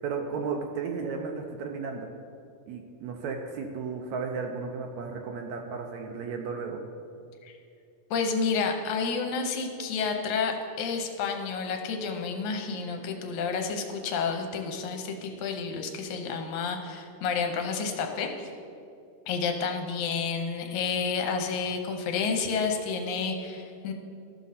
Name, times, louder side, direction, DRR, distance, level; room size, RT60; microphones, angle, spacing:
voice 1, 0.0-2.1 2.7-6.8, right 5 dB, 75° right, 3 dB, 1.8 m, -34 dB
voice 2, 8.1-18.5 19.3-23.9, left 5 dB, 75° left, 4 dB, 2.1 m, -30 dB
14.0 x 6.3 x 4.1 m, 2.5 s
omnidirectional pair, 3.6 m